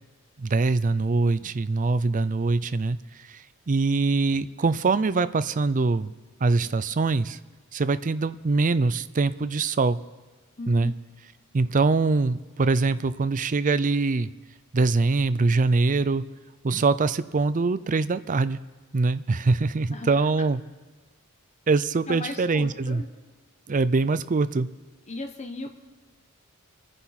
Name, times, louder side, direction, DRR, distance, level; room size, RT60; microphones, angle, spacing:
voice 1, 0.4-3.0 3.3-3.4 3.7-6.1 6.4-7.4 7.7-10.0 10.7-10.9 11.5-14.3 14.7-16.2 16.6-18.6 18.9-20.6 21.7-23.0 23.7-24.7, right 3 dB, 35° right, 13 dB, 0.5 m, -23 dB
voice 2, 10.6-10.9 19.9-20.3 22.1-23.1 25.1-25.7, left 2 dB, 30° left, 6 dB, 1.0 m, -36 dB
27.0 x 10.0 x 4.2 m, 1.3 s
head